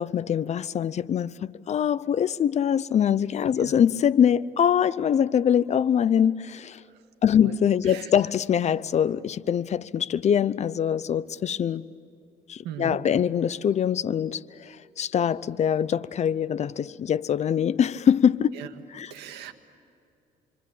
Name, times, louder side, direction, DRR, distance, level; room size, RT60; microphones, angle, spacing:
voice 1, 0.0-6.8 7.2-11.8 12.5-18.5 18.9-19.1, left 8 dB, 40° left, 0.7 m, -23 dB
voice 2, 12.6-13.0 18.6-18.7 19.1-19.5, right 9 dB, 85° right, 1.9 m, -38 dB
28.0 x 24.5 x 8.6 m
cardioid pair, 110°, 17 cm